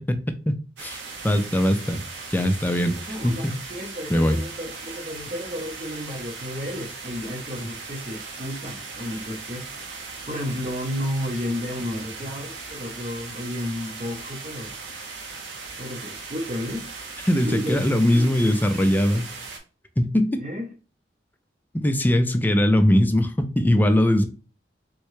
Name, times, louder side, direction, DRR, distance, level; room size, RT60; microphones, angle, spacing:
voice 1, 0.5-1.0 1.2-2.0 2.3-2.9 3.2-3.5 4.1-4.4 17.2-19.3 20.0-20.4 21.8-24.3, left 1 dB, 10° left, 0.3 m, -20 dB
sound 1, 0.8-19.6, right 4 dB, 85° right, 0.8 m, -38 dB
voice 2, 3.0-9.7 10.2-14.7 15.8-16.9 17.4-17.8 18.1-18.3 20.4-20.7, left 1 dB, 35° right, 0.6 m, -32 dB
3.6 x 2.2 x 3.0 m
head